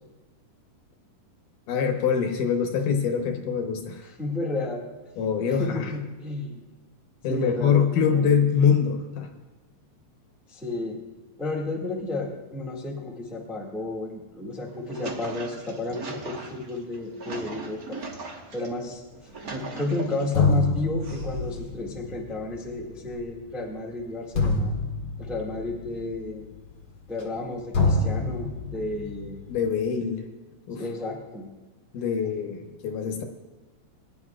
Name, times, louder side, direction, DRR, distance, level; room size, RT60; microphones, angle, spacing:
voice 1, 1.7-4.1 5.2-5.9 7.2-9.3 29.5-30.2 30.7-30.8 31.9-33.2, left 7 dB, 70° left, 4 dB, 2.4 m, -24 dB
voice 2, 4.2-4.8 5.5-6.6 7.3-8.3 10.5-11.0 11.4-18.0 18.5-19.0 19.5-24.7 25.2-26.4 27.1-29.4 30.7-31.5, left 2 dB, ahead, -2 dB, 0.6 m, -32 dB
sound 1, 14.6-18.7 19.1-20.4 21.0-21.7, right 2 dB, 75° right, 0.8 m, -38 dB
sound 2, 19.8-19.9 20.3-27.5 27.7-29.8, left 3 dB, 50° left, 1.6 m, -28 dB
21.5 x 10.5 x 2.4 m, 1.3 s
omnidirectional pair, 4.0 m